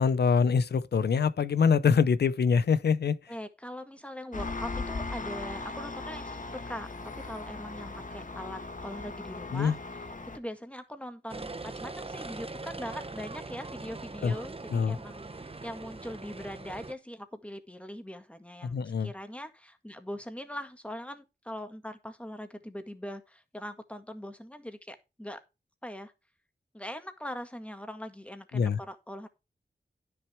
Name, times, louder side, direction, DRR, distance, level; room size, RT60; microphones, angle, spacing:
voice 1, 0.0-3.3 9.5-9.8 14.2-14.3 14.7-15.0 18.6-19.1 28.5-28.8, left 6 dB, 80° left, 0.7 m, -25 dB
voice 2, 3.3-6.9 7.2-9.8 10.3-25.4 25.8-26.1 26.7-29.3, equal, 5° left, 1.9 m, -41 dB
Engine, 4.3-10.4, left 3 dB, 50° left, 1.5 m, -38 dB
sound 1, 11.3-16.9, right 3 dB, 35° right, 1.0 m, -41 dB
10.0 x 6.7 x 4.5 m
cardioid pair, 40°, 17 cm